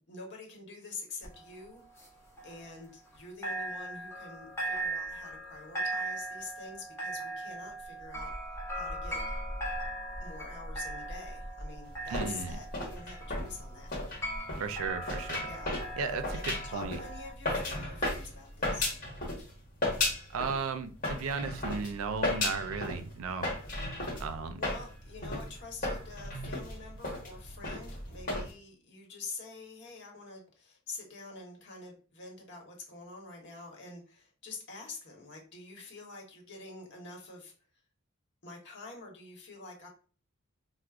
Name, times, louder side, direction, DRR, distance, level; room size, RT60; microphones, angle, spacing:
voice 1, 0.1-1.8 2.4-9.2 10.2-14.0 15.4-15.7 16.3-18.9 23.8-24.0 24.6-37.5 38.4-39.9, left 3 dB, 55° left, 0 dB, 1.1 m, -46 dB
sound 1, 1.2-3.2 3.4-17.3, right 1 dB, 15° left, 0.8 m, -39 dB
sound 2, 11.9-19.5 19.8-20.6 21.0-28.5, left 2 dB, 40° left, 1.2 m, -35 dB
voice 2, 12.1-12.6 14.6-15.5 16.0-17.0 20.3-23.5 24.2-24.6, right 5 dB, 85° right, 10 dB, 0.4 m, -35 dB
4.6 x 2.1 x 2.4 m, 0.38 s
head